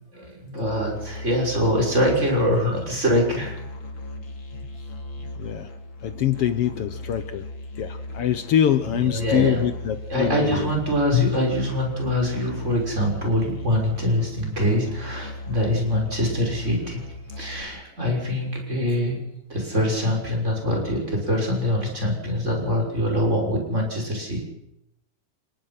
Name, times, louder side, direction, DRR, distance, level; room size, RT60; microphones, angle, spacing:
voice 1, 0.1-3.5 9.1-9.7 10.1-17.0 17.4-19.2 19.5-24.5, equal, 20° right, 0 dB, 6.5 m, -24 dB
Musical instrument, 0.7-17.6, left 1 dB, 40° left, 3.3 m, -37 dB
voice 2, 5.4-5.7 6.0-7.5 7.8-10.7 11.1-11.4, left 10 dB, 65° left, 11 dB, 1.6 m, -24 dB
29.0 x 18.5 x 5.8 m, 0.85 s
omnidirectional pair, 3.5 m